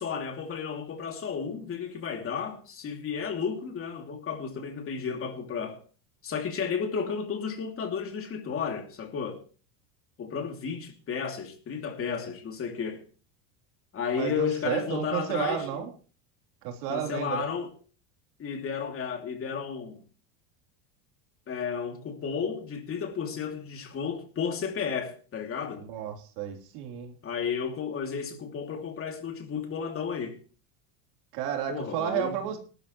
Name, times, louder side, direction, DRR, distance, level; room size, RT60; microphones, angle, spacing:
voice 1, 0.0-5.8 6.2-9.4 10.2-13.0 13.9-15.8 16.9-17.7 18.4-20.0 21.5-25.9 27.2-30.4 31.7-32.4, left 6 dB, 30° left, 2.8 m, -33 dB
voice 2, 14.1-15.9 16.6-17.5 25.7-27.1 31.3-32.6, right 10 dB, 80° right, 3.7 m, -32 dB
19.0 x 12.5 x 3.1 m
cardioid pair, 150°, 46 cm